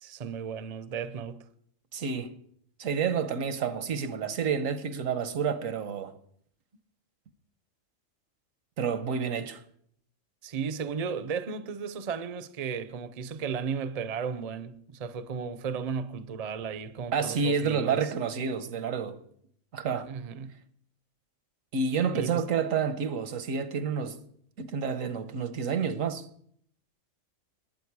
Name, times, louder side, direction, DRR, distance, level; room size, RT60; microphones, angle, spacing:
voice 1, 0.0-1.4 10.4-18.1 20.0-20.5 22.1-22.5, right 6 dB, 35° right, 0.7 m, -35 dB
voice 2, 1.9-2.3 2.8-6.1 8.8-9.6 17.1-19.2 19.7-20.1 21.7-24.2 24.6-26.3, right 6 dB, 80° right, 1.4 m, -29 dB
20.0 x 9.1 x 4.7 m
omnidirectional pair, 1.4 m